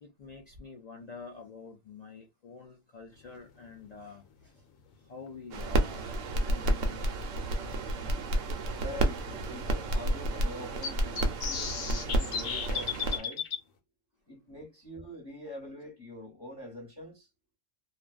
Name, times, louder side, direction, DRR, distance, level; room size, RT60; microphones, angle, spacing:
voice 1, 0.0-4.5 5.1-7.2, left 4 dB, 70° left, 0.4 m, -48 dB
sound 1, 5.3-5.4 7.3-7.4 8.0-8.1 8.3-8.4 10.8-13.6, left 6 dB, 90° left, 1.0 m, -34 dB
sound 2, 5.5-13.2, right 1 dB, 75° right, 0.9 m, -30 dB
voice 2, 8.7-13.4 14.3-17.3, left 1 dB, 20° left, 1.1 m, -45 dB
2.5 x 2.2 x 2.3 m
omnidirectional pair, 1.4 m